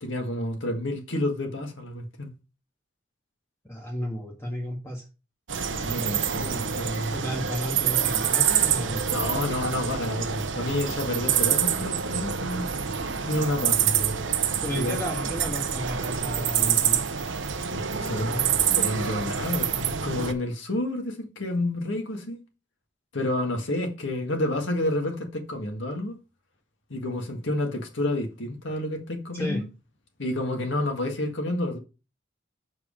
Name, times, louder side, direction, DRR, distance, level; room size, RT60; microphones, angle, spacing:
voice 1, 0.0-2.3 5.6-7.1 9.1-12.7 13.2-14.2 14.7-15.0 17.7-18.3 18.6-22.4 23.1-26.2 26.9-29.7 30.2-31.8, left 1 dB, 80° left, 1.7 m, -29 dB
voice 2, 3.7-5.0 7.1-9.1 14.6-17.0 18.0-18.5 29.3-29.6, equal, 15° left, 1.6 m, -33 dB
sound 1, 5.5-20.3, right 8 dB, 80° right, 0.8 m, -26 dB
6.9 x 4.8 x 5.1 m
head